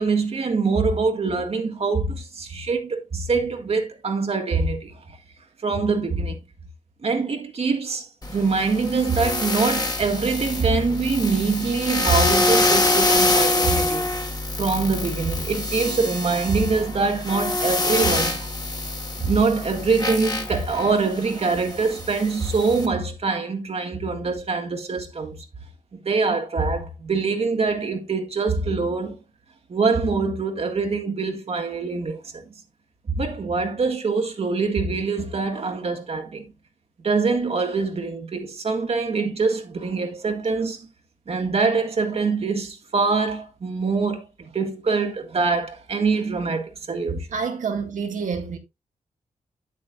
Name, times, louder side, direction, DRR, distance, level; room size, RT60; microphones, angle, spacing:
voice 1, 0.0-4.9 5.6-6.4 7.0-14.1 14.6-18.5 19.2-25.4 25.9-29.2 29.7-32.4 33.1-36.4 37.0-40.8 41.3-44.3 44.5-47.3, right 4 dB, 50° right, 1.7 m, -24 dB
sound 1, 8.2-22.9, left 2 dB, 30° left, 1.6 m, -25 dB
voice 2, 47.3-48.6, right 5 dB, 80° right, 1.9 m, -28 dB
8.8 x 8.4 x 2.4 m
cardioid pair, 85°, 13 cm